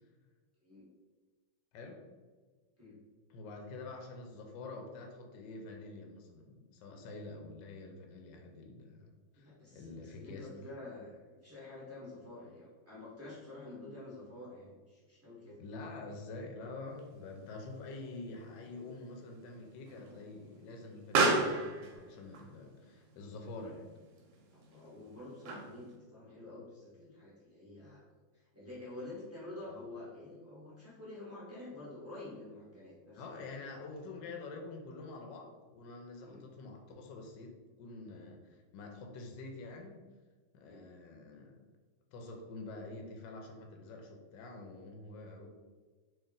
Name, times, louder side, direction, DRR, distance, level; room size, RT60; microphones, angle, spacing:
voice 1, 1.7-2.1 3.3-9.1 9.3-10.5 15.6-23.9 29.7-29.8 33.1-40.0 40.5-41.6 42.1-45.5, left 3 dB, 70° left, 2 dB, 1.1 m, -47 dB
voice 2, 9.4-15.6 24.5-28.0 28.3-33.3 36.2-36.4 40.7-40.9, left 2 dB, 15° right, -9 dB, 0.4 m, -48 dB
Explosion, 16.9-26.0, right 3 dB, 75° right, 1.2 m, -37 dB
3.1 x 2.8 x 3.7 m, 1.4 s
omnidirectional pair, 2.2 m